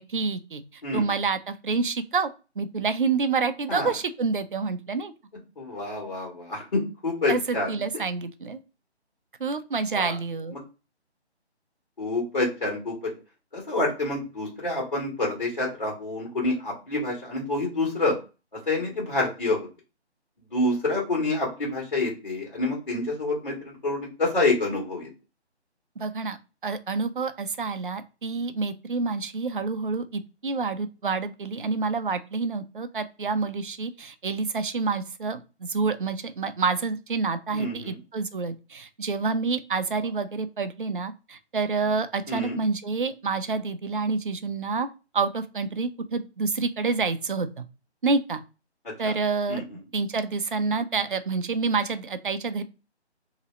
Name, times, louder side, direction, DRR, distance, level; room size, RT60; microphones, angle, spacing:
voice 1, 0.0-2.3 2.6-5.1 7.3-8.6 9.4-10.6 26.0-26.4 26.6-44.9 45.1-47.7 48.0-48.4 49.0-49.6 49.9-52.6, right 4 dB, 50° right, 10 dB, 0.5 m, -28 dB
voice 2, 5.6-7.8 9.9-10.1 10.5-10.6 12.0-13.1 13.5-18.1 18.7-19.7 20.5-25.1 37.5-38.0 42.3-42.6 49.0-49.1 49.5-49.6, left 2 dB, 40° left, -3 dB, 1.6 m, -27 dB
2.8 x 2.7 x 3.1 m, 0.31 s
figure-of-eight pair, 170°, 34 cm